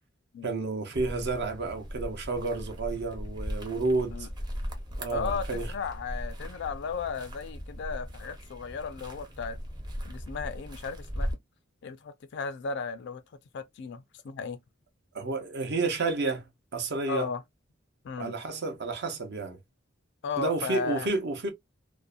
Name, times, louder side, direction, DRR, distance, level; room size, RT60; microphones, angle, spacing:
voice 1, 0.4-4.3 5.0-5.7 15.1-17.3 18.2-19.6 20.4-21.5, right 3 dB, 60° right, 0.7 m, -31 dB
sound 1, 0.9-11.3, equal, 20° right, 0.7 m, -38 dB
voice 2, 5.1-9.6 10.0-11.4 11.8-13.2 13.5-14.6 17.1-17.4 18.0-18.3 20.2-21.1, left 5 dB, 60° left, 0.4 m, -35 dB
2.5 x 2.1 x 2.3 m
head